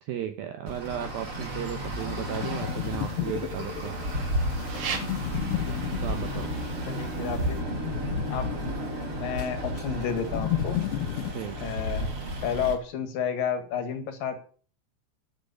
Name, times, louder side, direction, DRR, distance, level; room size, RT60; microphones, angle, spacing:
voice 1, 0.0-4.0 6.0-6.5 11.3-11.8, right 10 dB, 80° right, 7 dB, 2.1 m, -35 dB
sound 1, 0.7-11.3, left 15 dB, 80° left, 2.6 m, -34 dB
Traffic noise roadway noise, 0.7-12.7, equal, 30° right, 4.2 m, -33 dB
sound 2, 2.6-7.6, right 4 dB, 55° right, 3.6 m, -37 dB
voice 2, 6.9-7.6 8.3-8.5 9.2-10.8 11.6-12.1 12.4-14.4, left 7 dB, 55° left, 7 dB, 3.0 m, -31 dB
11.0 x 7.7 x 10.0 m, 0.43 s
omnidirectional pair, 5.4 m